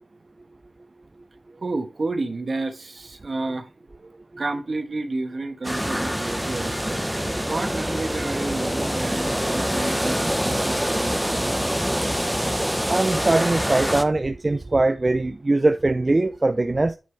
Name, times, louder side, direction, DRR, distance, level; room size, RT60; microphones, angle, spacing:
voice 1, 1.5-3.7 4.0-11.5, right 2 dB, 55° right, 1.2 m, -31 dB
sound 1, 5.6-14.0, equal, ahead, 0.7 m, -25 dB
voice 2, 12.9-17.0, right 2 dB, 35° right, 0.4 m, -21 dB
9.1 x 4.8 x 3.4 m
wide cardioid pair, 75°, 0 cm